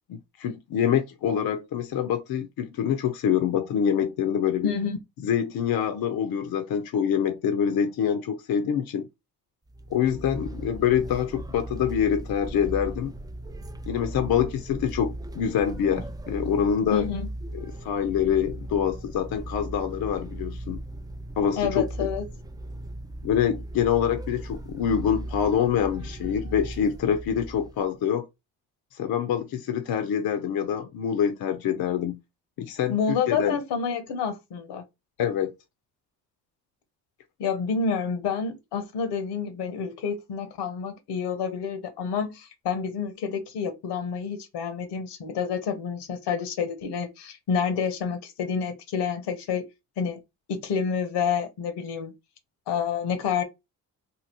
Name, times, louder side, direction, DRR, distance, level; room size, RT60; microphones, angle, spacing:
voice 1, 0.1-4.7 5.2-9.1 9.9-13.1 13.9-17.1 17.5-20.8 21.4-21.8 23.2-28.3 28.9-32.2 32.6-32.9 33.3-33.6 35.2-35.5, left 8 dB, 65° left, 0.6 m, -25 dB
voice 2, 4.6-5.0 16.9-17.3 21.6-22.3 32.9-34.8 37.4-49.6 50.0-50.2 50.5-52.1 52.7-53.4, left 6 dB, 85° left, 0.9 m, -28 dB
sound 1, 9.7-27.9, right 1 dB, 10° right, 0.4 m, -37 dB
2.8 x 2.7 x 2.8 m
supercardioid pair, 65°, 40 cm